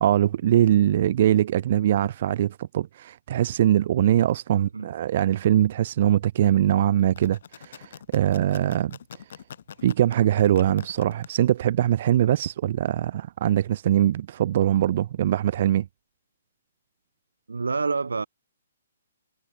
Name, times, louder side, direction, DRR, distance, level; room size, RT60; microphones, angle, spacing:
voice 1, 0.0-9.0 9.8-15.9, right 11 dB, 50° right, 0.6 m, -22 dB
voice 2, 4.5-4.9 17.5-18.3, right 4 dB, 85° right, 2.7 m, -28 dB
sound 1, 7.0-11.3, left 8 dB, 60° left, 7.9 m, -44 dB
hypercardioid pair, 140°, 0 cm